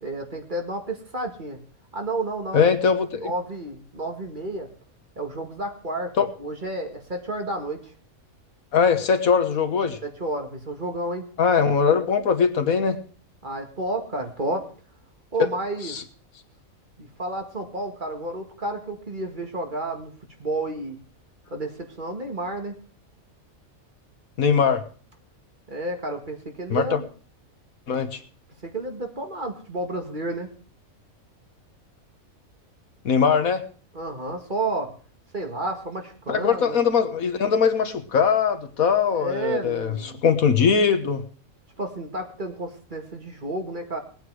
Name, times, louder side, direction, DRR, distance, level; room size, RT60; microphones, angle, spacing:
voice 1, 0.0-1.6 1.9-2.7 3.2-4.7 5.2-6.1 6.4-7.8 10.0-11.3 13.4-14.7 15.3-16.0 17.0-20.1 20.4-21.0 21.5-22.8 25.7-27.1 28.6-30.5 33.9-34.9 35.3-36.8 39.1-40.2 41.8-44.0, right 2 dB, 35° right, 3 dB, 2.2 m, -31 dB
voice 2, 2.5-3.3 6.2-6.3 8.7-10.0 11.4-13.0 15.8-16.0 24.4-24.8 26.7-27.0 27.9-28.2 33.1-33.6 36.3-41.2, left 6 dB, 80° left, 9 dB, 1.7 m, -21 dB
19.0 x 9.0 x 4.9 m, 0.42 s
omnidirectional pair, 1.5 m